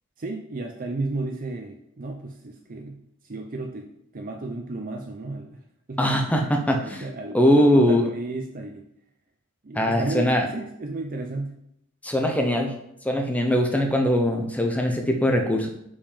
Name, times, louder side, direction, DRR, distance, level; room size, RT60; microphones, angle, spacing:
voice 1, 0.2-3.0 3.2-3.9 4.1-5.6 5.9-6.0 6.3-8.9 9.6-11.5, right 2 dB, 40° right, 3 dB, 0.6 m, -33 dB
voice 2, 6.0-7.0 7.3-8.0 9.7-10.5 12.0-12.7 13.0-15.7, equal, 5° left, 3 dB, 0.9 m, -21 dB
5.3 x 5.2 x 5.2 m, 0.76 s
head